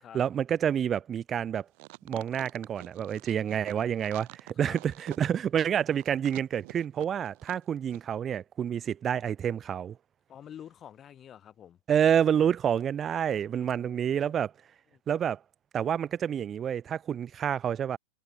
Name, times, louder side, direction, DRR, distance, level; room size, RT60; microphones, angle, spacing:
voice 1, 0.1-1.6 2.0-10.0 11.9-14.5 15.1-15.4 15.7-18.0, right 9 dB, 25° right, 0.5 m, -28 dB
sound 1, 1.7-7.6 7.9-8.0, right 31 dB, 45° right, 3.6 m, -47 dB
voice 2, 10.3-11.8 13.6-14.4 14.9-15.0, left 9 dB, 25° left, 7.0 m, -48 dB
figure-of-eight pair, 90°, 0 cm